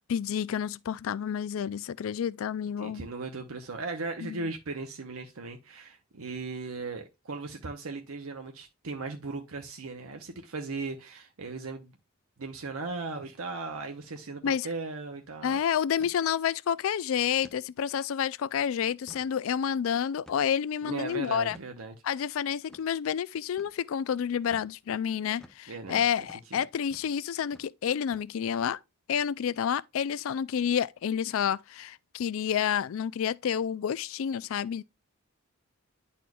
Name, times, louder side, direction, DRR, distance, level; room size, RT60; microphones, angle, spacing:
voice 1, 0.1-3.1 4.2-4.5 14.4-14.7 15.4-21.6 22.0-28.8 29.1-34.8, left 8 dB, 70° left, 0.3 m, -29 dB
voice 2, 2.8-12.0 12.4-15.6 20.8-22.0 25.7-26.0 26.5-26.6, right 3 dB, 75° right, 0.8 m, -37 dB
sound 1, 14.0-14.3 14.6-14.7 15.0-15.3 16.0-16.2 16.7-16.8 17.4-17.6 18.1-18.2 18.8-19.3 20.3-20.6 21.5-21.7 22.7-22.9 23.6-23.8 24.5-24.7 25.4-25.6 26.2-26.5 26.9-27.2 27.5-27.7 28.1-28.6, equal, 5° left, 0.5 m, -53 dB
10.5 x 4.3 x 2.3 m
head